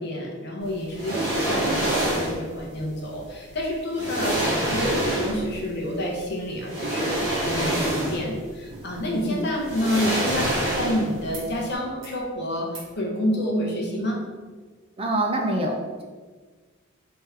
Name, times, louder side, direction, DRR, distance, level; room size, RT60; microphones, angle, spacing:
voice 1, 0.0-7.2 7.4-12.7 13.0-14.2, left 1 dB, 55° left, -1 dB, 0.7 m, -28 dB
sound 1, 0.9-2.4 3.5-3.6 3.9-5.5 6.6-8.4 8.7-8.8 9.6-11.2 11.5-11.7, right 1 dB, 55° right, 1.4 m, -26 dB
voice 2, 9.1-9.5 15.0-16.0, right 1 dB, 30° right, 1 dB, 0.4 m, -26 dB
sound 2, 11.3-11.5 11.8-12.2 12.7-13.0 14.3-14.4, right 3 dB, 70° right, 1.0 m, -47 dB
3.5 x 2.9 x 3.2 m, 1.4 s
head